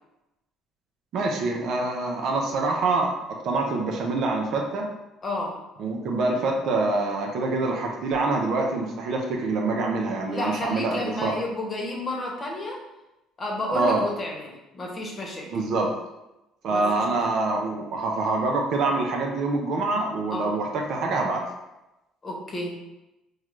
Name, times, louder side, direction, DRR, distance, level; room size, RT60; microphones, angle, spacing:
voice 1, 1.1-3.1 3.4-4.9 5.8-11.4 13.7-14.0 15.5-15.9 16.6-21.4, right 3 dB, 65° right, 1 dB, 0.6 m, -25 dB
voice 2, 5.2-5.6 10.3-12.8 13.4-15.5 16.7-17.0 20.3-20.5 22.2-22.7, left 1 dB, 35° left, -1 dB, 1.0 m, -31 dB
3.6 x 2.3 x 3.2 m, 0.96 s
supercardioid pair, 70°, 0 cm